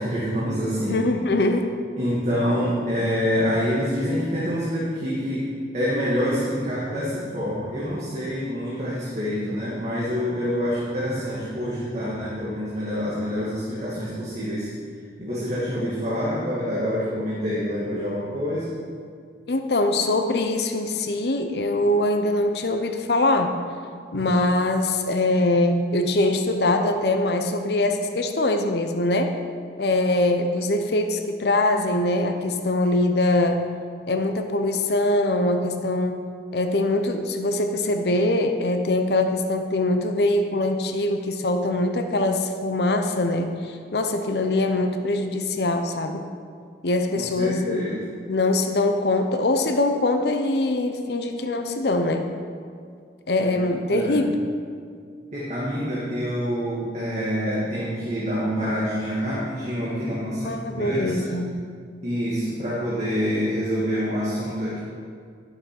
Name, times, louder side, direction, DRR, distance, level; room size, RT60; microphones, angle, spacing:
voice 1, 0.0-1.0 2.0-5.4 5.7-14.7 15.2-18.7 47.1-48.0 53.4-53.5 53.9-54.3 55.3-61.3 62.0-64.8, equal, 40° right, -8 dB, 1.9 m, -26 dB
voice 2, 0.9-1.7 19.5-23.5 24.1-29.3 29.8-33.6 34.1-36.2 36.5-46.2 46.8-47.8 48.3-52.4 53.3-54.4 60.4-61.5, left 2 dB, 60° left, 6 dB, 0.7 m, -23 dB
11.5 x 6.9 x 5.9 m, 2.2 s
head